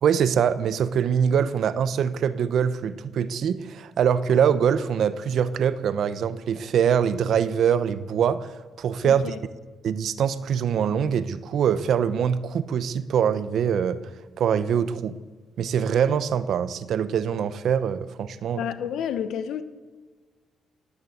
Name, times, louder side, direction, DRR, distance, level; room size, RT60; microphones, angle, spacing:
voice 1, 0.0-8.5 8.8-9.3 9.8-14.0 14.4-15.2 15.6-18.6, right 8 dB, 65° right, 13 dB, 1.1 m, -23 dB
voice 2, 9.0-9.4 18.5-19.6, left 9 dB, 75° left, 11 dB, 1.4 m, -30 dB
18.0 x 9.8 x 8.1 m, 1.3 s
cardioid pair, 90°, 0 cm